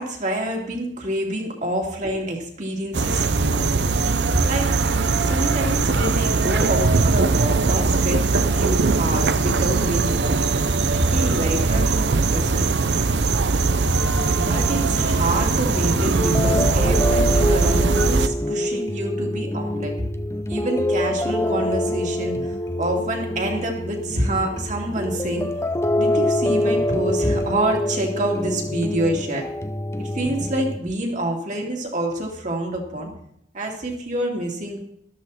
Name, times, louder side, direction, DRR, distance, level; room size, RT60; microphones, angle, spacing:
voice 1, 0.0-3.6 4.4-4.8 5.2-10.5 10.9-12.7 14.3-20.0 20.5-25.5 26.0-29.5 30.0-33.1 33.5-34.8, right 1 dB, 45° right, 1 dB, 2.7 m, -27 dB
sound 1, 2.9-18.3, right 4 dB, 75° right, 0.7 m, -20 dB
sound 2, 14.0-30.8, left 1 dB, 15° left, 0.6 m, -26 dB
13.5 x 13.0 x 4.3 m, 0.72 s
head